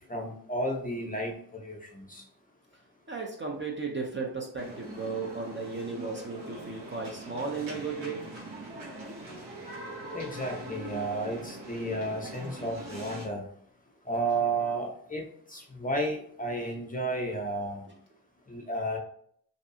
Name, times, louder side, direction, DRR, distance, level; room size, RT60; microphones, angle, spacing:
voice 1, 0.1-2.2 10.1-13.5 14.0-17.9 18.5-19.0, right 2 dB, 20° left, 1 dB, 0.7 m, -32 dB
voice 2, 3.1-8.2, right 4 dB, 25° right, 0 dB, 0.6 m, -35 dB
sound 1, 4.6-13.3, right 1 dB, 80° right, 1.2 m, -42 dB
2.7 x 2.3 x 2.6 m, 0.63 s
supercardioid pair, 60°, 47 cm